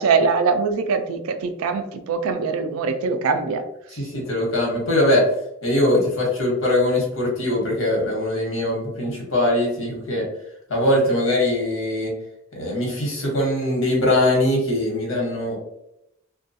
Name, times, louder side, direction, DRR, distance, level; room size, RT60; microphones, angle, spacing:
voice 1, 0.0-3.6, right 4 dB, 80° right, 9 dB, 0.3 m, -22 dB
voice 2, 4.0-5.2 5.6-10.2 10.7-12.1 12.5-15.6, left 1 dB, 65° left, -2 dB, 1.0 m, -21 dB
2.3 x 2.2 x 2.6 m, 0.82 s
head